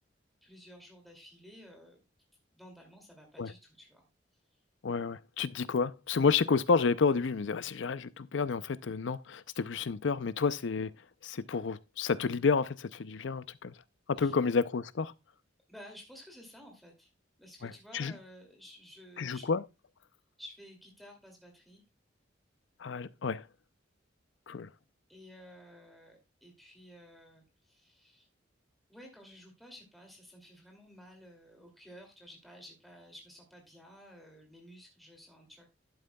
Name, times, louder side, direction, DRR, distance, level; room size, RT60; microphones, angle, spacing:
voice 1, 0.4-2.0 2.5-4.1 14.2-14.3 15.7-17.1 17.4-19.5 20.4-21.8 25.1-28.3 28.9-35.7, equal, ahead, 2.5 m, -53 dB
voice 2, 4.8-10.9 11.2-13.7 14.1-15.1 17.6-18.1 19.2-19.6 22.8-23.4 24.5-24.7, left 5 dB, 70° left, 0.5 m, -30 dB
11.5 x 8.8 x 2.3 m
head